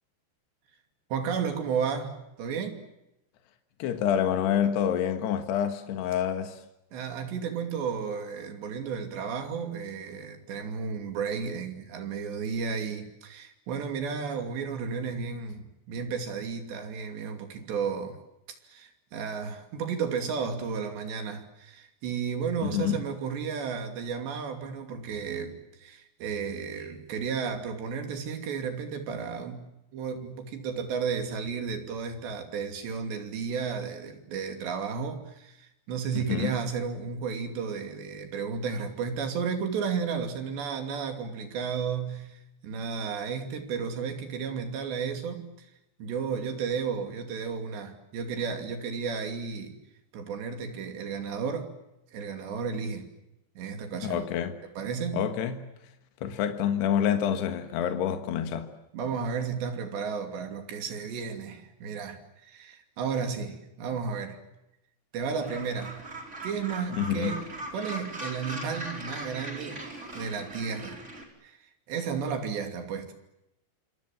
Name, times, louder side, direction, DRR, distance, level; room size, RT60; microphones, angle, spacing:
voice 1, 1.1-2.8 6.9-18.2 18.6-29.7 29.9-45.7 46.0-49.8 50.1-51.7 52.1-53.1 53.6-54.2 54.8-55.3 58.9-64.4 65.1-66.0 66.4-67.4 67.7-69.9 70.1-71.0 71.4-73.1, right 6 dB, 75° right, 5.0 m, -33 dB
voice 2, 3.8-6.6 22.6-23.0 36.1-36.6 54.0-54.6 55.1-55.6 56.2-58.7 67.0-67.3, left 9 dB, 75° left, 3.6 m, -27 dB
Gull seagull, 65.4-71.2, right 1 dB, 15° right, 4.3 m, -40 dB
27.5 x 26.0 x 7.6 m
omnidirectional pair, 5.0 m